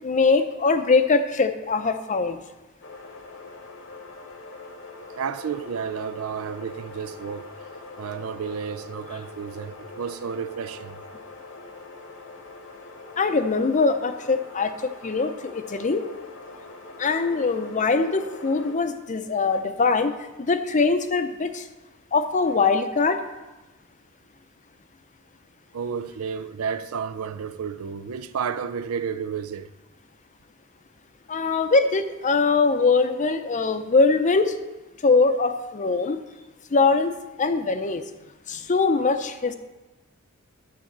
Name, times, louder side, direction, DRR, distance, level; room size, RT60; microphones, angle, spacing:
voice 1, 0.0-2.4 13.2-14.7 15.0-16.0 17.0-20.1 20.4-21.6 22.1-23.2 31.3-34.5 35.0-36.2 36.7-38.0 38.5-39.6, left 4 dB, 35° left, 0.6 m, -22 dB
sound 1, 2.8-18.8, left 3 dB, 60° left, 1.0 m, -43 dB
voice 2, 5.2-7.5 8.0-11.0 25.7-29.7, right 6 dB, 80° right, 0.5 m, -31 dB
10.5 x 4.1 x 7.3 m
head